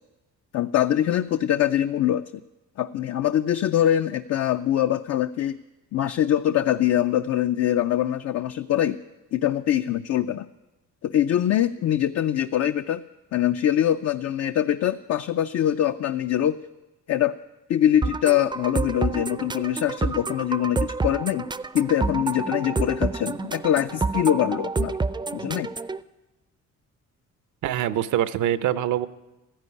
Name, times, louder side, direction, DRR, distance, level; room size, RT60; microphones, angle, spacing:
voice 1, 0.5-2.4 2.8-5.6 5.9-9.0 9.3-10.5 11.0-13.0 13.3-16.6 17.1-17.4 17.7-21.4 21.7-25.0 25.3-25.7, left 11 dB, 55° left, 9 dB, 0.5 m, -23 dB
sound 1, 18.0-26.0, right 3 dB, 15° right, 0.4 m, -28 dB
voice 2, 27.6-29.1, right 11 dB, 80° right, 14 dB, 0.7 m, -24 dB
14.0 x 10.5 x 9.6 m, 1.1 s
cardioid pair, 90°, 30 cm